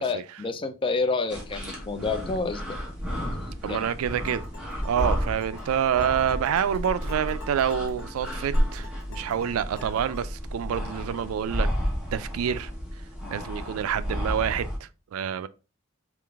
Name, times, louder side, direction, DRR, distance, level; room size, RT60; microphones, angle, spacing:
voice 1, 0.0-2.8 3.7-3.9 13.2-13.4, left 4 dB, 25° left, 0.3 m, -29 dB
sound 1, 1.3-14.8, equal, 5° right, 0.9 m, -32 dB
voice 2, 3.6-4.4 4.8-11.7 12.1-12.7 13.3-15.5, right 8 dB, 80° right, 0.3 m, -27 dB
sound 2, 4.3-10.3, left 3 dB, 75° left, 1.1 m, -46 dB
3.8 x 2.4 x 3.4 m
head